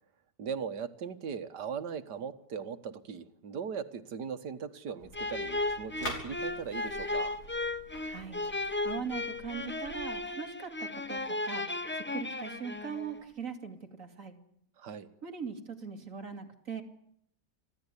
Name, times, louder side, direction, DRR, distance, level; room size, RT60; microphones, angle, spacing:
voice 1, 0.4-7.4 14.8-15.1, right 6 dB, 85° right, 11 dB, 1.9 m, -39 dB
sound 1, 5.0-10.0, left 1 dB, 70° left, 5.9 m, -46 dB
sound 2, 5.1-13.2, left 2 dB, 10° left, 0.5 m, -35 dB
voice 2, 8.0-8.4 8.8-11.7 11.9-14.3 15.2-16.8, right 6 dB, 50° right, 6 dB, 2.7 m, -40 dB
26.0 x 15.5 x 9.9 m, 0.73 s
omnidirectional pair, 1.7 m